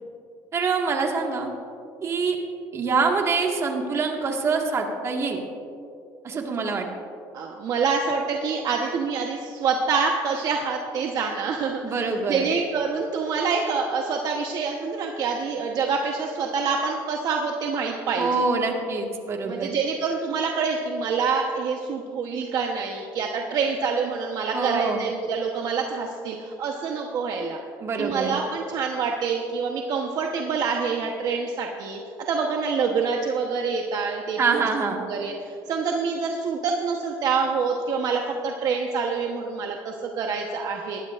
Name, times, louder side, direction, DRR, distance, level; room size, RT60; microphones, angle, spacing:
voice 1, 0.5-1.5 2.0-2.4 2.7-5.4 6.2-6.9 11.8-12.4 18.2-19.7 24.5-25.0 27.8-28.4 34.4-35.1, right 4 dB, 35° right, 2 dB, 1.6 m, -25 dB
voice 2, 7.3-18.4 19.4-27.6 28.0-32.0 32.3-34.7 35.1-41.0, right 5 dB, 55° right, 1 dB, 1.0 m, -26 dB
19.5 x 11.5 x 2.5 m, 2.5 s
cardioid pair, 120°, 8 cm